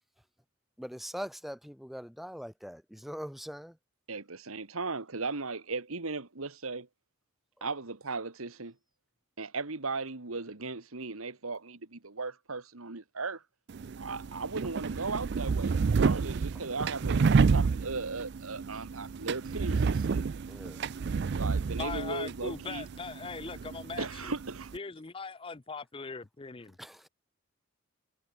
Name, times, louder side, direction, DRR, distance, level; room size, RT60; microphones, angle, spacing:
voice 1, 0.8-3.8 7.6-7.7 20.5-20.8 26.8-27.1, equal, ahead, 1.7 m, -42 dB
voice 2, 4.1-6.9 7.6-8.7 9.4-13.4 14.0-20.2 21.3-22.8 24.0-24.7, right 3 dB, 85° right, 1.9 m, -37 dB
sound 1, 13.7-24.8, right 5 dB, 55° right, 0.4 m, -30 dB
voice 3, 21.8-24.3 24.7-26.8, left 4 dB, 25° left, 0.5 m, -40 dB
head